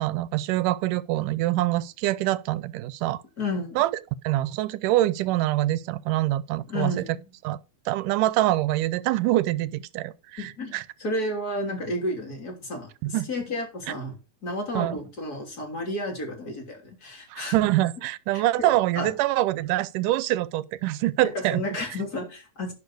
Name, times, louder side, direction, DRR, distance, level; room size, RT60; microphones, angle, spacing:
voice 1, 0.0-3.2 3.8-3.9 4.2-6.9 7.4-7.6 7.9-10.8 13.0-13.3 14.7-15.0 17.3-21.6, right 16 dB, 85° right, 2.2 m, -25 dB
voice 2, 3.4-3.8 6.7-7.2 10.4-14.1 14.4-17.5 18.3-19.1 21.2-22.7, left 1 dB, 30° left, 3.6 m, -32 dB
10.5 x 5.0 x 6.1 m
omnidirectional pair, 3.7 m